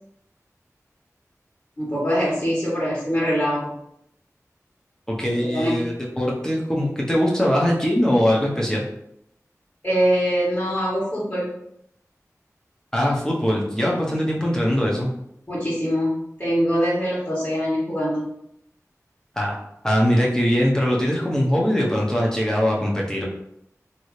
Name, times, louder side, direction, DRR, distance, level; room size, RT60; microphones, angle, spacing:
voice 1, 1.8-3.7 5.3-5.8 9.8-11.5 15.5-16.1 16.4-18.2, equal, 40° left, -9 dB, 1.5 m, -23 dB
voice 2, 5.1-8.9 12.9-15.1 19.4-19.6 19.8-23.2, equal, 10° left, -3 dB, 0.9 m, -21 dB
3.1 x 2.8 x 3.2 m, 0.77 s
wide cardioid pair, 50°, 6 cm